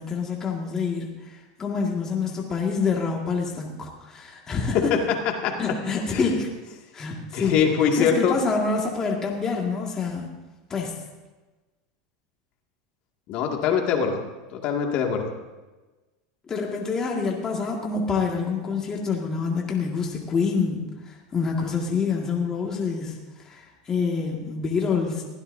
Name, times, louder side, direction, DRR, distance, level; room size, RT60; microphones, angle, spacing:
voice 1, 0.0-4.9 5.6-6.5 6.9-7.6 8.0-10.3 10.7-11.0 16.5-25.2, left 5 dB, 20° left, -1 dB, 2.0 m, -27 dB
voice 2, 7.3-8.4 13.3-14.2 14.5-15.3, left 7 dB, 50° left, 1 dB, 2.2 m, -23 dB
22.5 x 16.0 x 2.7 m, 1.2 s
supercardioid pair, 140°, 3 cm